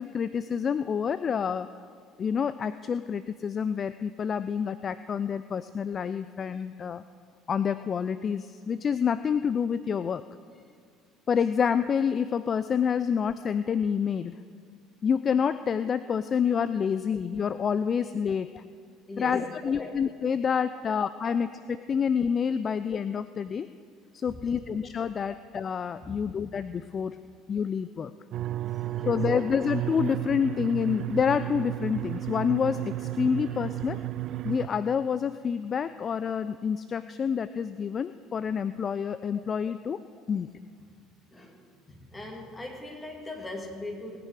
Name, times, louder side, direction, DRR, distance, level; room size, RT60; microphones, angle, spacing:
voice 1, 0.0-1.7 2.2-7.0 7.5-10.2 11.3-14.4 15.0-18.6 19.2-23.7 24.1-27.2 27.5-28.1 29.1-34.0 34.4-40.0 40.3-40.5, left 7 dB, 35° left, 14 dB, 0.3 m, -28 dB
voice 2, 19.1-19.9 20.5-20.6 22.7-22.8 24.2-24.6 25.3-25.4 26.0-26.2 28.7-29.4 39.3-39.4 40.1-40.2 41.3-41.6 41.9-44.2, left 2 dB, 15° left, 1 dB, 2.8 m, -40 dB
sound 1, 28.3-34.7, right 14 dB, 50° right, 0.3 m, -33 dB
20.0 x 9.6 x 4.9 m, 2.1 s
figure-of-eight pair, 60°, 0 cm